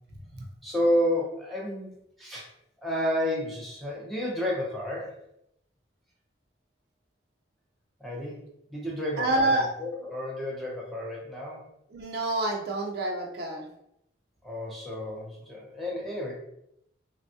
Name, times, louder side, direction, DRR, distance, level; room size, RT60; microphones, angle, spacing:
voice 1, 0.6-1.9 2.2-2.5 2.8-5.2 8.0-8.4 8.7-9.5 9.8-11.6 14.4-16.3, equal, ahead, -4 dB, 0.6 m, -30 dB
voice 2, 9.2-9.7 11.9-13.7, right 2 dB, 55° right, 0 dB, 0.5 m, -27 dB
3.4 x 2.3 x 2.7 m, 0.76 s
head